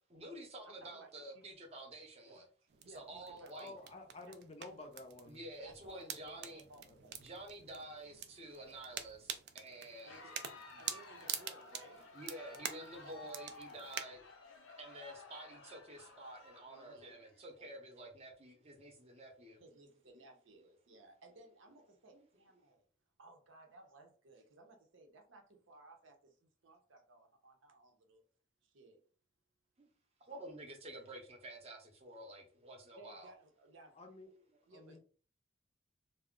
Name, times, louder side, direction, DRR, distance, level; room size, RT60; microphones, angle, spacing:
voice 1, 0.1-2.4 2.8-3.7 5.3-6.6 7.2-10.2 10.7-10.8 12.1-14.2 14.8-19.6 20.9-21.0 22.1-22.3 29.8-29.9 30.3-33.3 34.9-35.0, right 1 dB, 30° right, 0.6 m, -50 dB
voice 2, 0.6-1.4 2.3-2.4 2.8-3.7 4.2-4.3 5.6-7.1 10.0-12.1 13.0-13.2 13.7-13.9 16.7-17.2 17.6-17.7 19.6-22.9 23.2-28.2 28.6-29.0 30.3-30.5 33.0-34.0 34.7-35.0, right 2 dB, 80° right, 0.7 m, -60 dB
sound 1, 2.7-14.0, right 9 dB, 55° right, 0.3 m, -47 dB
voice 3, 3.5-5.4 6.9-7.1 33.9-34.3 34.7-35.0, left 2 dB, 30° left, 0.4 m, -51 dB
Crowd, 9.9-17.4, left 3 dB, 85° left, 0.7 m, -55 dB
2.3 x 2.1 x 3.6 m
head